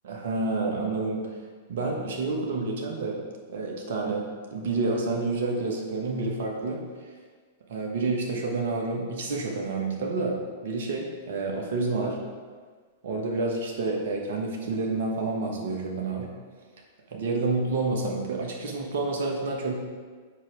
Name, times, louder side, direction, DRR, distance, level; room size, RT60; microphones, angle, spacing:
voice 1, 0.0-1.4 1.7-3.2 3.5-4.2 4.5-6.8 7.7-10.4 10.6-12.2 13.0-16.3 17.1-19.7, right 3 dB, 60° right, 1 dB, 1.4 m, -29 dB
7.5 x 6.0 x 3.5 m, 1.6 s
figure-of-eight pair, 100°, 0 cm